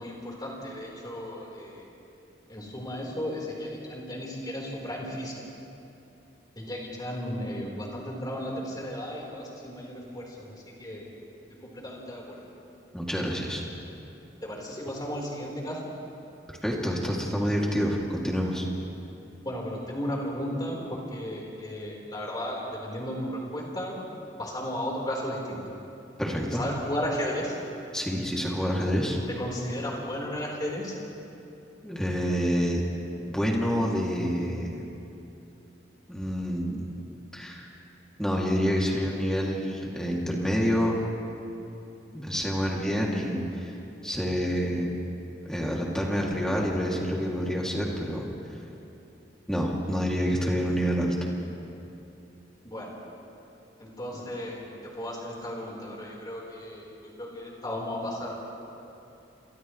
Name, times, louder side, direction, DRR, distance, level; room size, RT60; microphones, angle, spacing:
voice 1, 0.0-1.9 2.5-5.4 6.6-11.1 11.6-12.4 14.4-15.8 19.4-23.9 24.4-25.6 26.6-27.6 29.4-30.9 52.6-52.9 53.8-54.7 54.9-56.9 57.2-58.3, equal, 20° left, -3 dB, 4.5 m, -34 dB
voice 2, 12.9-13.6 16.6-18.7 26.2-26.6 27.9-29.2 31.8-32.8 33.3-34.8 36.1-36.8 37.3-37.7 38.2-41.0 42.1-43.7 44.0-44.9 45.4-48.6 49.5-51.1, equal, 5° left, -3 dB, 2.8 m, -27 dB
29.5 x 26.5 x 3.3 m, 2.8 s
head